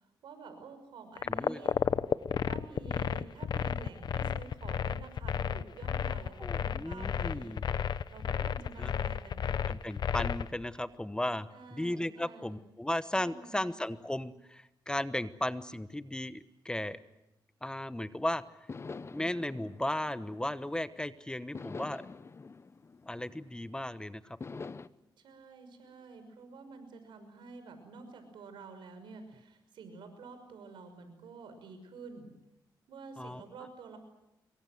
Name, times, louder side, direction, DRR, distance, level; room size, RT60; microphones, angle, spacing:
voice 1, 0.0-1.7 2.4-7.6 8.1-9.6 11.5-12.5 13.1-13.7 25.2-32.3 32.9-34.0, right 4 dB, 85° right, 8 dB, 5.9 m, -49 dB
sound 1, 1.2-10.5, left 8 dB, 65° left, 1.0 m, -32 dB
voice 2, 1.3-1.6 6.4-7.6 8.8-8.9 9.7-17.0 17.6-18.4 19.0-22.1 23.1-24.4 33.2-33.4, left 1 dB, 10° left, 13 dB, 1.1 m, -35 dB
sound 2, 18.7-20.9 21.5-23.8 24.4-24.9, left 4 dB, 35° left, 1.0 m, -45 dB
26.5 x 23.0 x 7.9 m, 0.90 s
cardioid pair, 85°, 8 cm